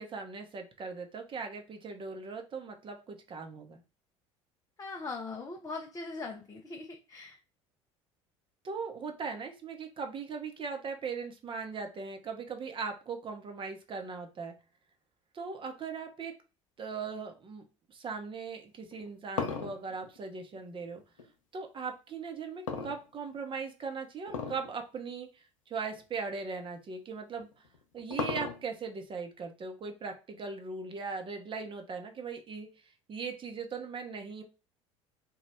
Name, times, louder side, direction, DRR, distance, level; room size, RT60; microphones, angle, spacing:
voice 1, 0.0-3.8 8.6-14.5 15.3-16.3 16.8-17.6 17.9-21.0 21.5-25.3 25.7-27.5 27.9-32.7 33.1-34.4, right 5 dB, 30° right, 4 dB, 0.8 m, -39 dB
voice 2, 4.8-7.4, left 3 dB, 20° left, 2 dB, 0.6 m, -40 dB
sound 1, 18.8-21.3 22.7-23.5 24.3-24.7 25.0-25.1 25.9-26.0 27.4-28.9, left 5 dB, 85° left, 0.6 m, -36 dB
3.0 x 2.3 x 3.3 m, 0.32 s
figure-of-eight pair, 65°, 16 cm